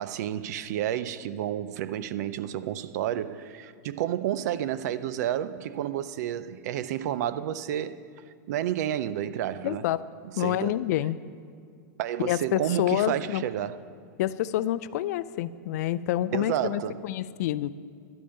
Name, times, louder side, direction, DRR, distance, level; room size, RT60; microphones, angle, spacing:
voice 1, 0.0-8.0 8.5-9.9 10.4-10.7 12.0-13.8 16.3-17.0, right 11 dB, 65° right, 0.5 m, -30 dB
voice 2, 9.6-10.0 10.4-11.2 12.2-13.4 14.2-17.7, left 13 dB, 60° left, 0.4 m, -28 dB
11.5 x 5.2 x 8.6 m
supercardioid pair, 140°, 10 cm